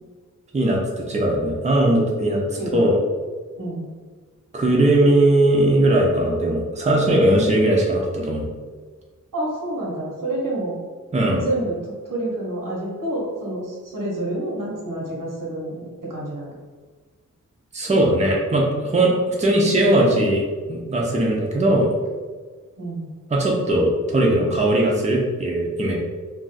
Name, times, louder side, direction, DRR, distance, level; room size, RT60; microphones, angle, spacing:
voice 1, 0.5-2.4 2.7-3.0 4.5-8.4 11.1-11.4 17.7-21.9 23.3-26.0, right 1 dB, 20° right, -2 dB, 0.5 m, -19 dB
voice 2, 2.5-2.9 3.6-3.9 9.3-10.8 11.4-16.5 22.8-23.1, right 1 dB, 90° right, -3 dB, 1.0 m, -28 dB
2.4 x 2.3 x 4.0 m, 1.4 s
wide cardioid pair, 115°, 31 cm